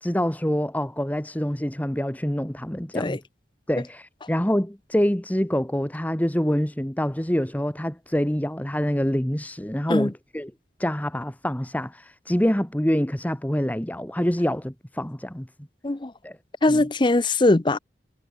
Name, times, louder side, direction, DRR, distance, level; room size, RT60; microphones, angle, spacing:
voice 1, 0.0-3.2 3.7-10.5 10.8-15.5 16.2-16.4 16.7-16.8, equal, 10° left, 1.2 m, -26 dB
voice 2, 16.6-17.8, left 2 dB, 25° left, 0.6 m, -21 dB
head